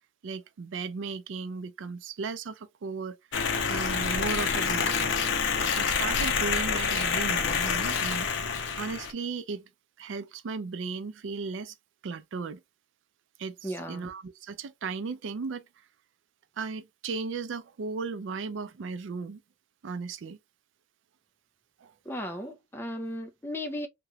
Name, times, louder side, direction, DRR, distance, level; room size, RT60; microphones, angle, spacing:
voice 1, 0.2-3.2 3.7-5.1 5.7-8.3 8.8-9.7 10.0-11.8 12.0-12.6 13.4-15.6 16.6-19.4 19.8-20.4 21.8-21.9, right 4 dB, 85° right, 0.4 m, -36 dB
sound 1, 3.3-9.1, left 6 dB, 80° left, 0.6 m, -27 dB
voice 2, 13.6-14.1 22.1-23.9, equal, 10° left, 0.5 m, -35 dB
2.9 x 2.9 x 2.3 m
head